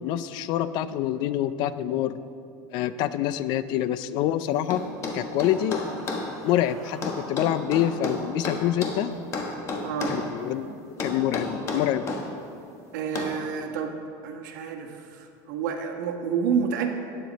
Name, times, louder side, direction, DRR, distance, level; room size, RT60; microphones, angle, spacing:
voice 1, 0.0-2.2 2.7-4.8 5.1-5.8 6.4-9.1 10.1-10.7 11.0-12.1, left 12 dB, 50° left, 14 dB, 0.4 m, -26 dB
sound 1, 4.7-6.3 7.0-9.0 9.3-10.3 11.0-12.3 13.2-13.4, left 3 dB, 30° left, 1.4 m, -31 dB
sound 2, 5.4-7.6, equal, 5° left, 2.1 m, -46 dB
voice 2, 9.8-10.2 10.7-10.8 11.2-11.3 12.9-13.9 14.2-16.9, right 7 dB, 90° right, 4 dB, 1.3 m, -29 dB
12.5 x 9.8 x 4.0 m, 2.6 s
supercardioid pair, 150°, 10 cm